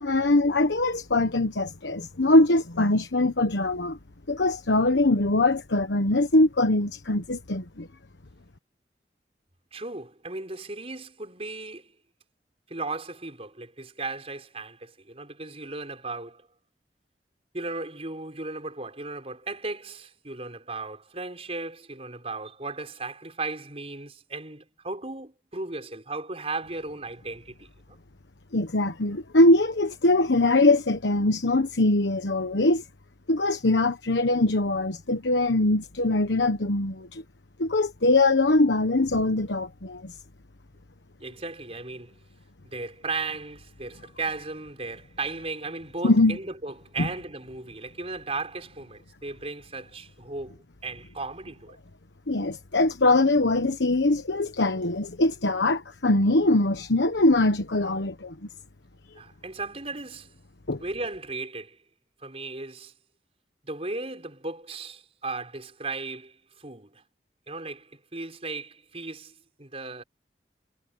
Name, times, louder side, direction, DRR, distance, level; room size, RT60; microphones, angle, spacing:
voice 1, 0.0-4.0 4.3-7.9 28.5-32.8 33.3-37.2 37.6-40.1 46.0-46.4 47.0-47.1 52.3-58.3 60.7-60.8, left 2 dB, 90° left, 1.2 m, -22 dB
voice 2, 9.7-11.9 12.7-16.5 17.5-28.0 41.2-42.2 42.6-50.6 50.8-51.8 59.2-60.3 60.8-61.8 62.2-62.9 63.6-67.0 67.5-70.0, right 3 dB, 35° right, 5.3 m, -36 dB
head